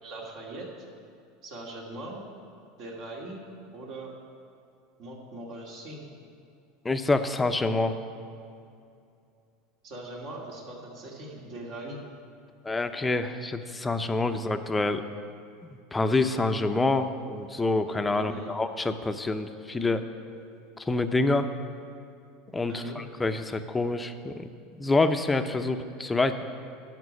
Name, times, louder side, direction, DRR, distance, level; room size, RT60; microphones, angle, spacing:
voice 1, 0.0-0.7 1.4-2.2 2.8-3.4 3.7-4.1 5.0-6.0 9.8-12.0 18.2-18.5 22.7-23.0 25.8-25.9, right 2 dB, 55° right, -1 dB, 2.6 m, -40 dB
voice 2, 6.8-8.0 12.6-15.0 15.9-20.0 20.8-21.5 22.5-24.5 24.8-26.4, left 2 dB, 15° left, 8 dB, 0.6 m, -27 dB
11.0 x 6.0 x 8.4 m, 2.5 s
supercardioid pair, 110°, 0 cm